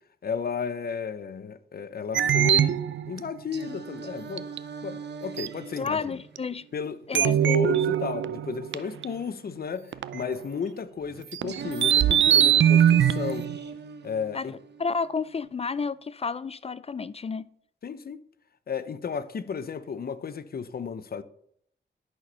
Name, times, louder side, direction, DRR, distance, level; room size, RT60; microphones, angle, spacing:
voice 1, 0.2-4.5 4.8-6.1 6.7-13.5 14.0-14.5 17.8-18.2 18.7-21.2, left 6 dB, 55° left, 0.8 m, -33 dB
sound 1, 2.1-3.2 4.4-4.6 5.4-5.5 5.8-5.9 6.4-6.5 7.1-9.0 9.9-10.4 11.3-13.6, right 10 dB, 80° right, 0.5 m, -22 dB
Singing, 3.5-7.5 11.5-15.5, right 5 dB, 65° right, 1.0 m, -38 dB
voice 2, 5.8-6.7 7.1-7.4 14.3-14.5 14.8-17.5, left 5 dB, 35° left, 0.4 m, -31 dB
11.0 x 6.1 x 5.4 m
wide cardioid pair, 100°, 19 cm